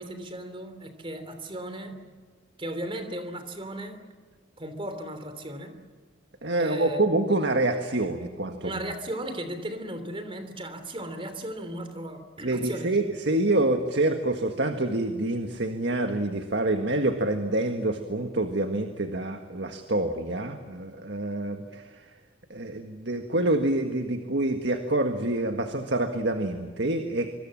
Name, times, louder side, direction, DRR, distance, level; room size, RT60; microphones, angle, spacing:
voice 1, 0.0-2.1 2.6-4.0 4.6-5.8 6.6-7.0 8.6-13.0, right 1 dB, 25° right, 9 dB, 3.1 m, -36 dB
voice 2, 6.4-8.8 12.4-22.1 22.5-27.3, right 2 dB, 60° right, 5 dB, 1.7 m, -27 dB
25.5 x 25.0 x 7.6 m, 1.6 s
head